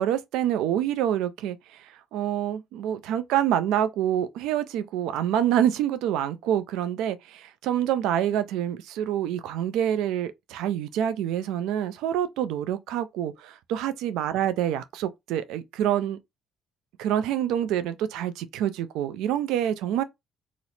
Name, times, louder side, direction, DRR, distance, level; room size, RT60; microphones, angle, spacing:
voice 1, 0.0-16.2 17.0-20.0, right 10 dB, 85° right, 0.4 m, -27 dB
3.0 x 2.0 x 4.0 m
cardioid pair, 105°, 0 cm